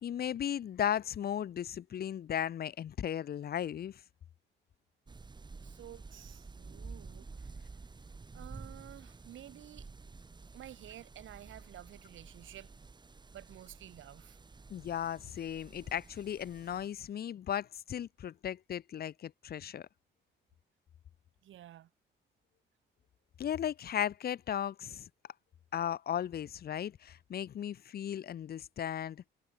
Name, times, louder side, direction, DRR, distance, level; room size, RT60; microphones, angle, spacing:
voice 1, 0.0-4.0 14.7-19.9 23.4-25.1 25.7-29.2, left 10 dB, 50° left, 0.8 m, -36 dB
sound 1, 5.1-16.9, right 4 dB, 20° right, 1.2 m, -51 dB
voice 2, 5.6-7.5 8.3-9.9 10.5-12.7 13.3-14.4 21.4-21.9, right 12 dB, 75° right, 5.2 m, -51 dB
cardioid pair, 90°, 20 cm